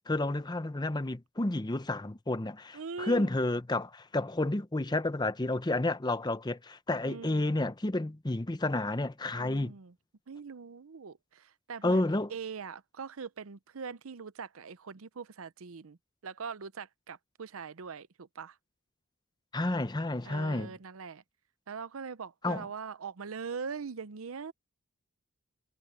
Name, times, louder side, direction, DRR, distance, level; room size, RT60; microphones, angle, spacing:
voice 1, 0.1-9.7 11.8-12.3 19.5-20.7 22.4-22.7, left 2 dB, 20° left, 0.7 m, -30 dB
voice 2, 2.7-3.3 7.0-7.5 9.4-9.9 10.3-18.6 20.2-21.2 21.7-24.5, right 5 dB, 80° right, 0.7 m, -42 dB
head